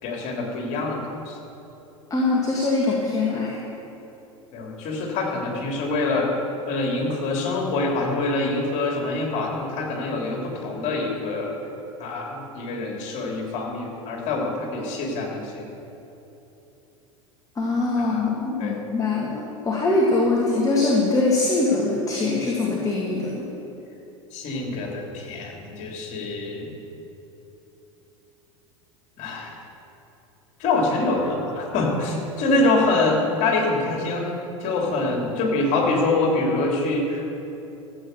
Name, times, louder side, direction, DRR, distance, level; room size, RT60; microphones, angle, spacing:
voice 1, 0.0-1.4 4.5-6.3 6.7-11.5 12.0-15.7 18.0-18.2 18.6-18.8 24.3-26.7 29.2-29.5 30.6-34.3 34.6-37.4, left 2 dB, 45° left, -1 dB, 3.1 m, -25 dB
voice 2, 2.1-3.6 17.6-23.4, left 3 dB, 20° left, -3 dB, 1.9 m, -22 dB
14.5 x 8.0 x 6.7 m, 2.9 s
figure-of-eight pair, 80°, 17 cm